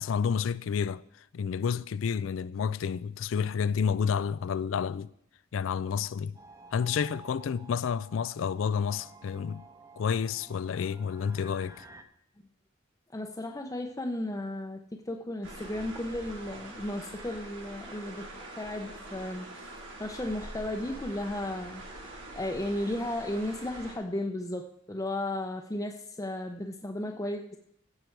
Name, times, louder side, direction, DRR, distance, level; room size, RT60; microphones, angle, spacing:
voice 1, 0.0-5.1 5.5-6.3 6.7-9.6 10.0-11.9, left 6 dB, 75° left, 0.4 m, -30 dB
sound 1, 6.3-12.0, right 2 dB, 15° right, 0.9 m, -52 dB
voice 2, 13.1-18.3 18.6-19.7 20.0-22.0 22.3-24.6 24.9-27.6, left 1 dB, 15° left, 0.7 m, -34 dB
sound 2, 15.4-23.9, right 1 dB, 70° right, 3.2 m, -44 dB
15.5 x 6.8 x 4.6 m
head